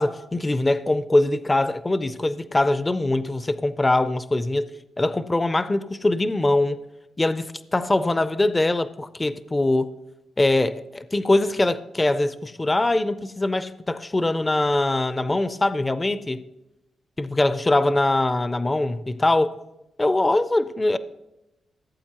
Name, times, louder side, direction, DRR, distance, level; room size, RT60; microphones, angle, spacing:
voice 1, 0.0-4.7 5.0-6.8 7.2-9.9 10.4-16.4 17.2-19.6 20.0-21.0, left 2 dB, 20° left, 0.4 m, -22 dB
16.5 x 8.2 x 2.9 m
cardioid pair, 75°, 0 cm